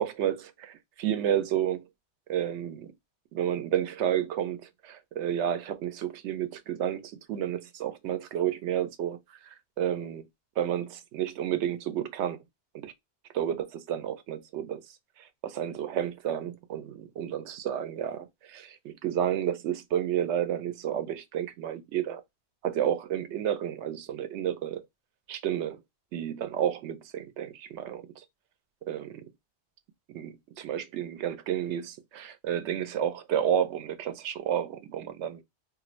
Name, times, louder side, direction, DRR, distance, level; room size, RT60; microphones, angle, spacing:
voice 1, 0.0-1.9 2.3-2.9 3.3-10.3 10.6-12.4 12.7-12.9 13.3-14.8 15.2-22.2 22.6-24.8 25.3-25.8 26.1-28.0 28.9-29.2 30.1-35.4, right 10 dB, 85° right, 0.9 m, -31 dB
2.6 x 2.5 x 3.0 m
omnidirectional pair, 1.1 m